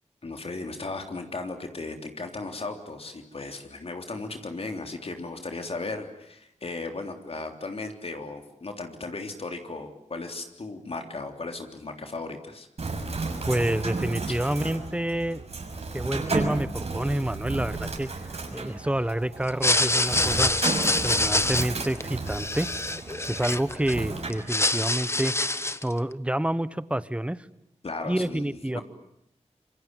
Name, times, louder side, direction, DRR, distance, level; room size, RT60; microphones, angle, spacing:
voice 1, 0.2-12.7 13.0-13.1 27.8-28.8, left 3 dB, 55° left, 5 dB, 3.5 m, -36 dB
Bird, 12.8-24.3, right 3 dB, 60° right, 6.4 m, -33 dB
voice 2, 13.5-15.5 15.9-18.1 18.5-20.5 20.8-22.7 23.3-25.3 25.8-27.4 28.1-28.8, right 1 dB, 10° right, 16 dB, 1.2 m, -28 dB
sound 1, 19.5-23.9 24.3-25.9, left 2 dB, 20° left, 1.4 m, -25 dB
27.0 x 24.0 x 9.1 m, 0.78 s
wide cardioid pair, 70°, 12 cm